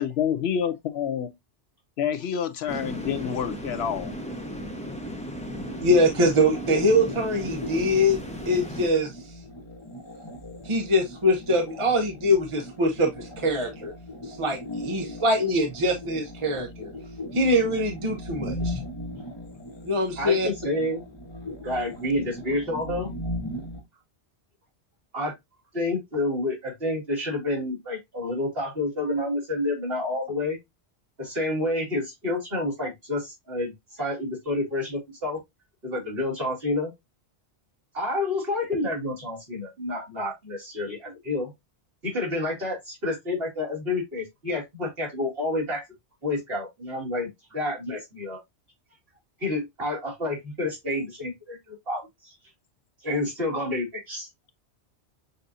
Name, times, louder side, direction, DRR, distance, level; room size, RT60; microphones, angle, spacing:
voice 1, 0.0-1.3 2.0-4.1, left 8 dB, 70° left, 0.8 m, -28 dB
sound 1, 2.7-8.9, equal, 5° left, 0.7 m, -36 dB
sound 2, 5.4-23.8, left 1 dB, 25° left, 1.1 m, -38 dB
voice 2, 5.8-8.2 8.5-9.2 10.6-13.9 14.3-16.9 17.3-18.8 19.8-20.5, left 1 dB, 30° right, 0.8 m, -23 dB
voice 3, 20.2-21.0 21.6-23.1 25.1-25.3 25.7-30.6 31.2-35.4 35.8-36.9 37.9-41.5 42.0-45.8 46.2-48.4 49.4-52.3 53.0-54.3, left 2 dB, 55° right, 2.4 m, -29 dB
6.6 x 2.6 x 2.6 m
omnidirectional pair, 1.2 m